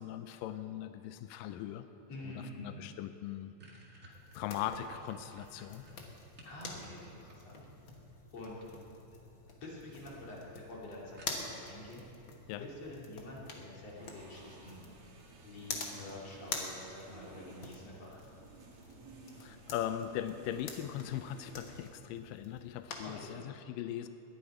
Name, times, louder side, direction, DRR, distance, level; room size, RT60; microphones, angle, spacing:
voice 1, 0.0-1.9 2.2-2.3 2.6-3.5 3.9-5.9 12.5-12.7 19.4-24.1, left 11 dB, 85° left, 9 dB, 2.0 m, -40 dB
voice 2, 2.1-2.8 6.4-7.6 8.3-8.6 9.5-12.0 12.6-14.8 15.4-18.2 23.0-23.4, left 1 dB, 45° left, -5 dB, 3.3 m, -47 dB
sound 1, 3.1-6.6 7.0-7.9 9.0-9.4 9.7-9.8 10.2-10.3 10.6-10.7 11.2-11.7, right 1 dB, 35° right, 1.4 m, -57 dB
sound 2, 4.1-23.4, left 4 dB, 60° left, 1.2 m, -47 dB
sound 3, 14.0-21.9, right 4 dB, 50° right, 2.0 m, -56 dB
19.5 x 11.5 x 4.9 m, 2.7 s
omnidirectional pair, 4.3 m